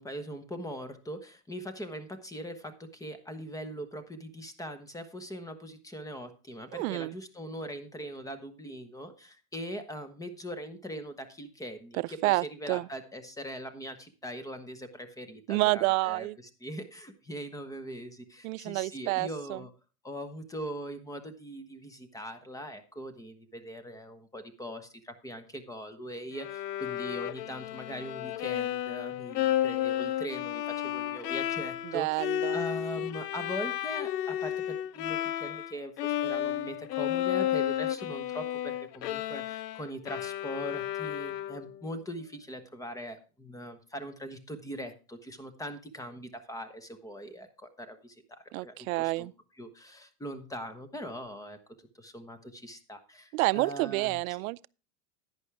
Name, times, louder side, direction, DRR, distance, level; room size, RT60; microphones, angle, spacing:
voice 1, 0.0-16.3 16.6-19.7 20.0-49.3 49.6-51.6 52.0-54.2, equal, 5° left, 1.0 m, -41 dB
voice 2, 6.7-7.1 11.9-12.9 15.5-16.4 18.4-19.6 31.9-32.6 48.5-49.3 53.3-54.7, right 22 dB, 65° right, 0.5 m, -29 dB
Bowed string instrument, 26.4-35.7 36.0-41.8, left 12 dB, 85° left, 0.8 m, -32 dB
10.5 x 10.0 x 3.4 m
supercardioid pair, 130°, 46 cm